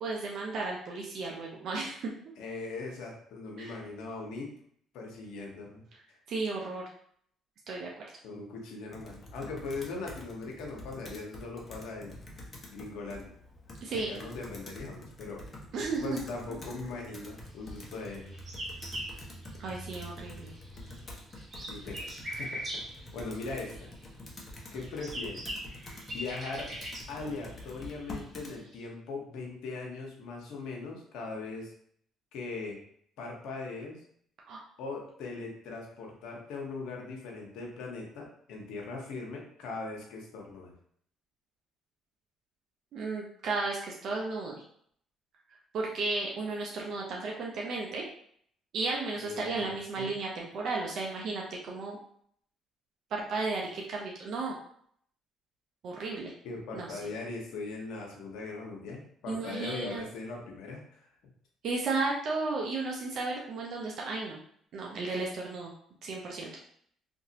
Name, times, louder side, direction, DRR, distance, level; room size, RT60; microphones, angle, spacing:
voice 1, 0.0-2.1 3.6-3.7 6.3-6.8 7.7-8.0 13.8-14.1 15.7-16.2 19.6-20.5 34.5-34.6 42.9-44.6 45.7-48.1 48.7-52.0 53.1-54.5 55.8-56.3 56.7-57.0 59.3-60.1 61.6-64.4 64.7-65.7 66.0-66.5, right 3 dB, 65° right, -2 dB, 0.5 m, -34 dB
voice 2, 2.4-4.5 4.9-5.8 8.2-12.1 12.7-13.3 14.1-15.4 16.0-18.3 21.7-23.9 24.7-25.4 26.1-26.7 27.1-31.7 32.3-32.8 33.2-34.0 34.8-40.7 49.1-50.1 56.4-61.1, left 3 dB, 75° left, 0 dB, 0.8 m, -40 dB
Computer keyboard, 8.9-28.6, left 1 dB, 35° left, 0.8 m, -47 dB
sound 1, 18.0-20.2 20.5-24.0 24.6-28.8, equal, 40° right, 1.1 m, -42 dB
2.9 x 2.6 x 2.7 m, 0.64 s
supercardioid pair, 75°, 0 cm